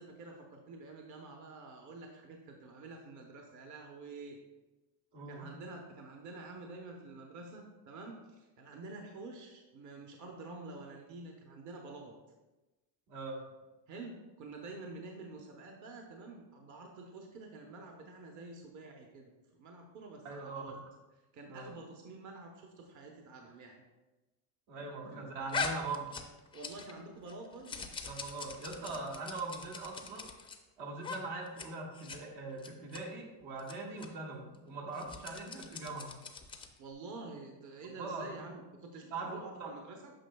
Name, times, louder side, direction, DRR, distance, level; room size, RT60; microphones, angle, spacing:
voice 1, 0.0-4.4 5.3-12.2 13.9-20.8 21.3-23.8 24.8-25.3 26.5-27.8 36.8-40.1, right 3 dB, 40° right, 1 dB, 0.8 m, -48 dB
voice 2, 5.1-5.5 13.1-13.4 20.2-20.8 21.5-21.7 24.7-26.2 28.1-30.3 30.8-36.2 38.0-38.3 39.1-39.7, right 3 dB, 70° right, -1 dB, 1.8 m, -41 dB
sound 1, 25.5-27.0 27.3-30.6 31.0-31.2 31.5-31.7 31.9-32.2 32.6-33.0 33.6-33.7 34.0-34.1 34.9-36.8, left 4 dB, 10° left, 0.4 m, -41 dB
8.8 x 6.1 x 2.2 m, 1.1 s
cardioid pair, 130°, 46 cm